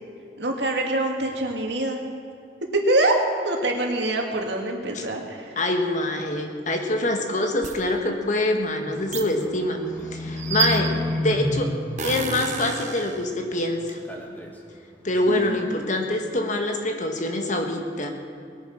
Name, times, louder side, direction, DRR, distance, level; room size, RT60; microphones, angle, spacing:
voice 1, 0.4-2.0 2.7-3.2 3.4-5.6 15.3-15.7, right 2 dB, 75° right, 2 dB, 2.2 m, -25 dB
voice 2, 5.5-9.8 10.1-11.8 12.0-14.0 15.0-18.1, left 1 dB, 45° left, 4 dB, 1.7 m, -25 dB
sound 1, 7.6-7.7 9.1-9.2 10.4-11.1 12.0-13.2, right 7 dB, 45° right, 1.1 m, -29 dB
Livestock farm animals working animals, 8.8-13.6 13.9-14.6 15.0-15.2, left 1 dB, 10° left, 1.7 m, -31 dB
20.0 x 9.2 x 6.5 m, 2.5 s
head